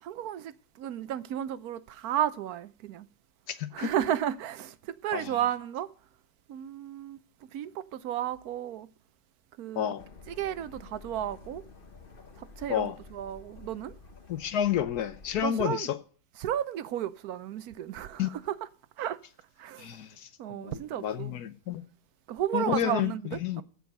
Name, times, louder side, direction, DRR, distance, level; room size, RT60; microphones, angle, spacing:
voice 1, 0.0-3.1 3.7-5.9 6.5-8.9 9.6-9.9 10.3-11.6 12.4-13.9 15.4-15.9 16.4-18.6 19.0-19.2 19.6-20.0 20.4-21.3 22.3-23.6, right 11 dB, 80° right, 1.2 m, -33 dB
voice 2, 3.5-3.9 5.1-5.4 9.8-10.1 12.7-13.0 14.3-16.0 18.2-18.3 19.8-21.9 22.5-23.6, left 10 dB, 90° left, 1.4 m, -30 dB
sound 1, 10.0-15.5, left 4 dB, 40° left, 1.1 m, -50 dB
15.0 x 5.3 x 6.5 m
omnidirectional pair, 1.6 m